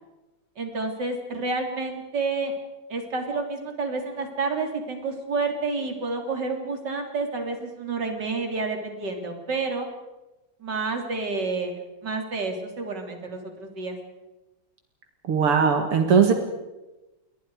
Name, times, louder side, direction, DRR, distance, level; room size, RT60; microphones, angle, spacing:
voice 1, 0.6-2.5 2.9-9.9 10.6-14.0, right 3 dB, 50° right, 3 dB, 4.0 m, -29 dB
voice 2, 15.3-16.3, right 6 dB, 85° right, 5 dB, 2.9 m, -19 dB
29.0 x 23.0 x 4.9 m, 1.0 s
omnidirectional pair, 2.4 m